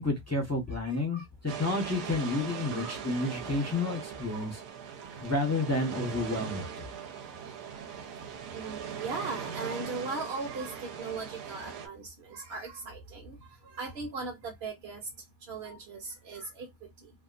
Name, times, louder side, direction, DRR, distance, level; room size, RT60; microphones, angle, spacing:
voice 1, 0.0-4.6 5.2-6.8, left 2 dB, 20° left, 0.5 m, -30 dB
voice 2, 0.9-1.3 2.7-3.0 4.2-4.5 5.1-5.2 8.5-13.4 13.6-15.1 15.5-16.7 17.0-17.1, right 3 dB, 50° right, 0.8 m, -39 dB
sound 1, 1.5-11.9, right 8 dB, 90° right, 1.2 m, -40 dB
2.8 x 2.4 x 2.4 m
omnidirectional pair, 1.7 m